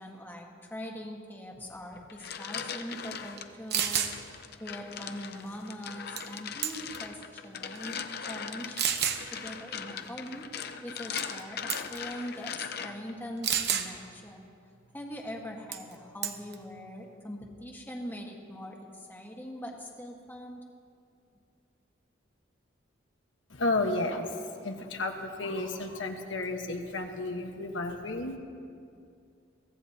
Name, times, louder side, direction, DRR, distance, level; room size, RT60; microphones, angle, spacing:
voice 1, 0.0-4.1 4.6-8.0 8.3-8.8 9.3-10.5 10.8-11.6 11.9-14.5 14.9-20.6, equal, 10° left, 0 dB, 1.5 m, -42 dB
sound 1, 1.9-3.5 4.0-13.1, left 7 dB, 55° left, 0.7 m, -40 dB
sound 2, 3.4-3.5 3.7-4.1 6.2-6.4 6.6-7.0 7.7-7.8 8.8-9.2 11.2-11.4 11.7-12.0 13.4-13.9 15.7-15.9 16.2-16.5, right 9 dB, 55° right, 0.9 m, -29 dB
voice 2, 23.5-28.4, left 2 dB, 75° left, 3 dB, 1.2 m, -32 dB
23.0 x 16.0 x 2.8 m, 2.4 s
head